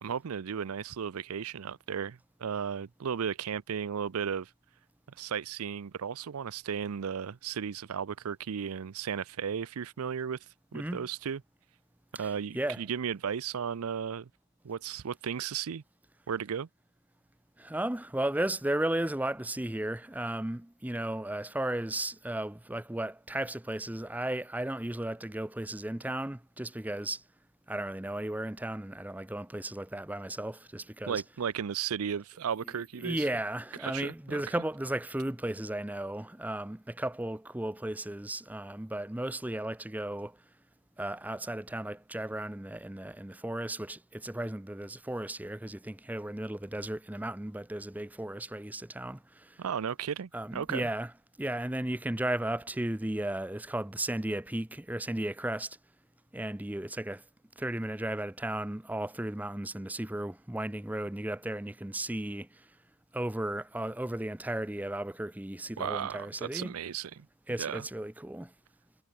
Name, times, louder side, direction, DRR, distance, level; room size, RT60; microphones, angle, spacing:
voice 1, 0.0-4.5 5.2-10.4 10.7-11.4 12.2-14.3 14.6-15.8 16.3-16.7 31.1-33.3 33.8-34.4 49.6-50.9 65.8-67.3 67.6-67.8, right 7 dB, 85° right, 0.5 m, -35 dB
voice 2, 10.7-11.1 12.1-12.8 17.6-27.2 27.7-31.2 33.0-40.4 41.0-49.6 50.3-51.1 51.4-55.8 56.3-57.2 57.6-62.7 63.1-66.8 67.5-68.5, right 1 dB, 5° right, 0.5 m, -35 dB
head